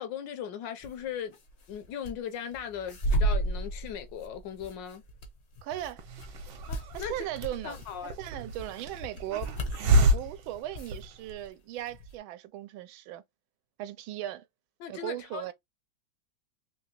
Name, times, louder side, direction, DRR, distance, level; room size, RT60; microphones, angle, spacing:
voice 1, 0.0-1.3 1.7-5.0 6.7-7.3 7.6-8.2 14.8-15.5, left 8 dB, 75° left, 1.2 m, -38 dB
sound 1, 0.8-1.0 1.3-2.1 2.5-10.3 10.7-11.5 11.8-12.1, right 1 dB, 60° left, 0.7 m, -33 dB
voice 2, 5.6-6.1 6.9-13.2 13.8-14.5 14.9-15.5, right 13 dB, 85° right, 1.4 m, -38 dB
Hiss, 6.0-11.5, right 1 dB, 70° right, 1.4 m, -29 dB
3.7 x 2.8 x 2.9 m
omnidirectional pair, 2.2 m